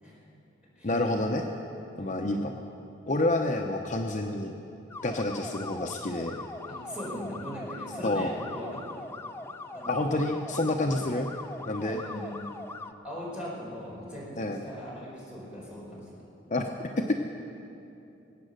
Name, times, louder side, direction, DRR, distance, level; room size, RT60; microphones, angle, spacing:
voice 1, 0.8-1.4 2.0-2.5 3.1-4.5 5.0-6.4 8.0-8.3 9.9-11.3 11.7-12.0 14.4-14.6 16.5-17.1, left 2 dB, 40° left, 2 dB, 0.7 m, -28 dB
sound 1, 4.9-12.9, left 2 dB, 15° left, 0.5 m, -41 dB
voice 2, 6.7-8.8 9.7-10.1 10.8-11.0 11.8-12.3 13.0-16.2, equal, 5° right, -7 dB, 4.7 m, -40 dB
22.5 x 8.9 x 6.5 m, 2.8 s
head